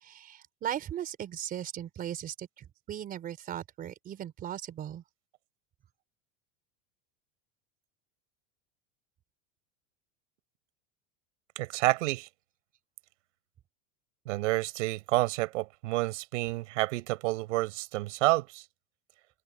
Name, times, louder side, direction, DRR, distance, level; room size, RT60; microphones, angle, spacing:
voice 1, 0.0-5.0, right 10 dB, 25° right, 4.3 m, -38 dB
voice 2, 11.5-12.3 14.2-18.6, right 19 dB, 85° right, 5.0 m, -29 dB
open air
supercardioid pair, 180°, 36 cm